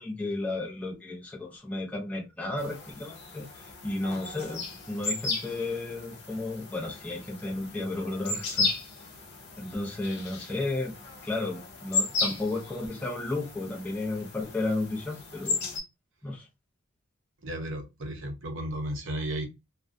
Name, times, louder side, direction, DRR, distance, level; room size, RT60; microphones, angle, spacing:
voice 1, 0.0-8.7 9.6-10.9 11.2-15.7 16.2-16.5, left 2 dB, 5° left, 0.6 m, -33 dB
sound 1, 2.6-15.8, left 3 dB, 55° left, 0.7 m, -35 dB
voice 2, 17.4-19.5, right 1 dB, 60° right, 0.6 m, -34 dB
2.3 x 2.1 x 2.5 m
head